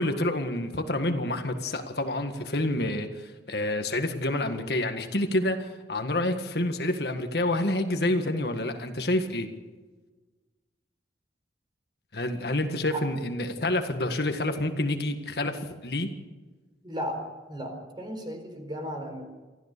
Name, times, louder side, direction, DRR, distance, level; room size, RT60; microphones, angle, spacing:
voice 1, 0.0-9.5 12.1-16.1, left 1 dB, 60° left, 6 dB, 1.8 m, -28 dB
voice 2, 16.8-17.2 17.5-19.2, equal, 25° right, 5 dB, 4.4 m, -35 dB
25.0 x 15.0 x 6.8 m, 1.3 s
head